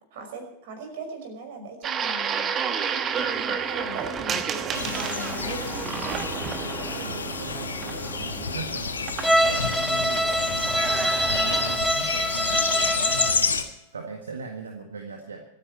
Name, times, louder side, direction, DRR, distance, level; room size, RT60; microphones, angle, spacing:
voice 1, 0.1-2.6 3.3-5.9, right 2 dB, 50° right, 5 dB, 5.6 m, -38 dB
sound 1, 1.8-11.8, right 7 dB, 25° right, 1.3 m, -31 dB
sound 2, 4.7-13.6, left 5 dB, 75° left, 1.5 m, -30 dB
voice 2, 6.9-9.0 9.4-15.4, right 4 dB, 70° right, 4 dB, 1.7 m, -39 dB
Bowed string instrument, 9.2-13.5, equal, ahead, 0.5 m, -24 dB
25.5 x 9.9 x 4.5 m, 0.80 s
figure-of-eight pair, 90°, 0 cm